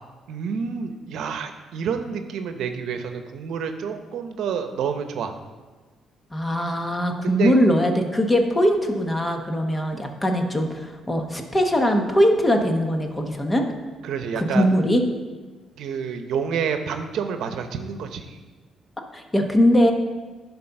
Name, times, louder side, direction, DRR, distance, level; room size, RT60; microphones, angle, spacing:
voice 1, 0.3-5.3 7.2-7.6 14.0-14.7 15.8-18.4, right 6 dB, 80° right, 7 dB, 0.8 m, -28 dB
voice 2, 6.3-13.6 14.4-15.0 19.1-19.9, equal, 20° left, 4 dB, 1.1 m, -21 dB
10.5 x 4.1 x 5.9 m, 1.3 s
cardioid pair, 90°, 0 cm